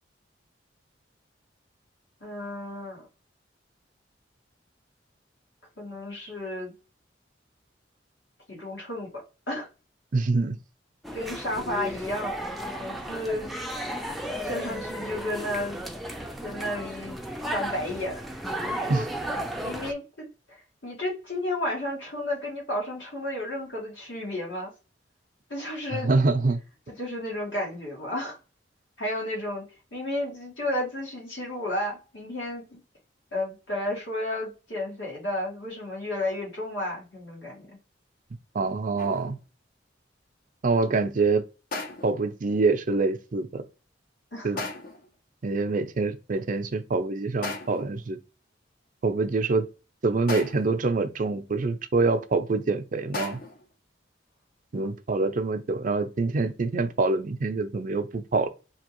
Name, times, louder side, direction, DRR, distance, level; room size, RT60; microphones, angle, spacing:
voice 1, 2.2-3.1 5.8-6.7 8.5-9.7 11.1-12.4 12.8-13.5 14.4-15.8 16.4-17.2 17.5-18.2 18.5-19.1 19.6-24.7 25.5-26.1 26.9-28.4 29.0-29.6 29.9-32.8 33.3-37.8 44.3-44.7 54.7-54.8, left 1 dB, 75° left, 2.4 m, -32 dB
voice 2, 10.1-10.6 18.9-19.1 25.9-26.6 38.5-39.4 40.6-41.4 42.0-43.6 44.4-44.6 45.4-48.2 49.0-49.7 50.0-53.4 54.7-58.5, right 3 dB, 45° right, 0.5 m, -25 dB
sound 1, 11.0-19.9, right 1 dB, ahead, 0.5 m, -34 dB
sound 2, 39.0-39.4 41.7-42.3 44.6-45.1 47.4-48.0 50.3-50.9 53.1-53.7, left 3 dB, 50° left, 0.8 m, -36 dB
5.2 x 2.8 x 3.0 m
head